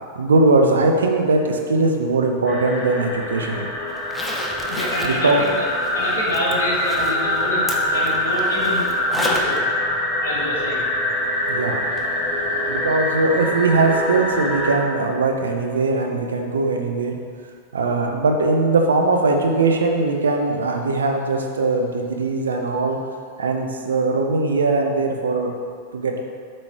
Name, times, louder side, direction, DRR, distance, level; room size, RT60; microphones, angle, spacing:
voice 1, 0.1-3.7 5.0-5.4 11.5-11.8 12.7-17.2 17.7-23.0 23.4-25.5 25.9-26.2, right 3 dB, 70° right, 2 dB, 0.6 m, -20 dB
sound 1, 2.5-14.8, left 1 dB, 30° left, 0.9 m, -24 dB
Zipper (clothing), 4.0-9.6 10.0-10.1 12.0-12.1 12.5-12.6, left 1 dB, 5° left, 0.6 m, -32 dB
voice 2, 4.6-5.7 5.9-9.6 10.2-10.9, left 1 dB, 65° left, -4 dB, 1.2 m, -27 dB
7.5 x 3.1 x 4.3 m, 2.2 s
figure-of-eight pair, 90°, 0 cm